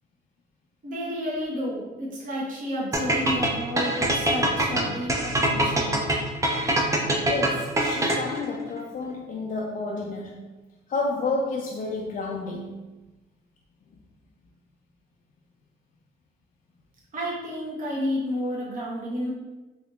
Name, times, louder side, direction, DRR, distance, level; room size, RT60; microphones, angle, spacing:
voice 1, 0.8-6.0 17.1-19.3, equal, 40° right, -5 dB, 0.9 m, -31 dB
sound 1, 2.9-8.5, right 1 dB, 15° right, 0.5 m, -24 dB
voice 2, 7.2-10.4 10.9-12.7 13.9-14.0, left 3 dB, 40° left, -2 dB, 0.4 m, -30 dB
3.5 x 2.7 x 2.3 m, 1.1 s
cardioid pair, 90°, 20 cm